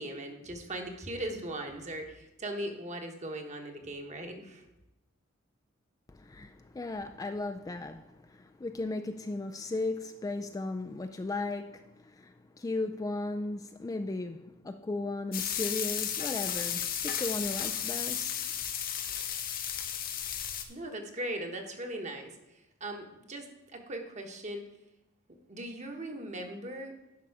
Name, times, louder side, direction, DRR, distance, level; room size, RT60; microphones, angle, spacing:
voice 1, 0.0-4.6 20.7-22.3 22.8-23.5 23.7-24.6 25.5-26.9, right 1 dB, 35° right, 1.3 m, -39 dB
voice 2, 6.1-18.4, left 2 dB, 15° left, 0.3 m, -36 dB
sound 1, 15.3-20.6, left 9 dB, 45° left, 0.8 m, -34 dB
11.0 x 5.6 x 4.8 m
head